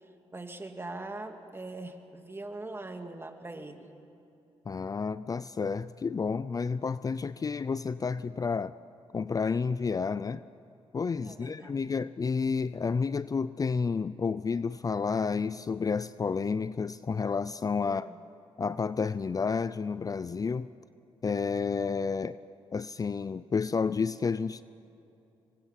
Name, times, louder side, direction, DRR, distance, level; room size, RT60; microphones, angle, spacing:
voice 1, 0.3-3.9 11.2-11.8 17.8-18.2, right 2 dB, 20° right, 5 dB, 2.2 m, -41 dB
voice 2, 4.7-8.7 9.1-10.4 10.9-18.1 18.6-20.7 21.2-22.4 22.7-24.6, left 5 dB, 35° left, 16 dB, 0.5 m, -30 dB
26.5 x 23.0 x 5.9 m, 2.8 s
cardioid pair, 80°, 11 cm